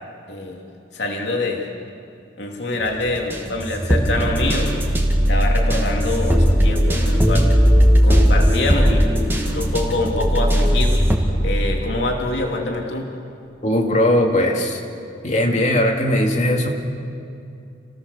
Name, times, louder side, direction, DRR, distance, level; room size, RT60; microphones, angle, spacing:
voice 1, 0.3-0.6 0.9-1.6 2.4-4.7 5.3-7.5 8.0-11.0 11.4-13.1, left 2 dB, 75° left, 0 dB, 3.0 m, -25 dB
sound 1, 2.8-11.2, equal, 15° right, 2.5 m, -17 dB
voice 2, 13.6-14.8 15.2-16.7, left 1 dB, 45° left, 1 dB, 2.4 m, -19 dB
29.5 x 17.5 x 6.9 m, 2.6 s
head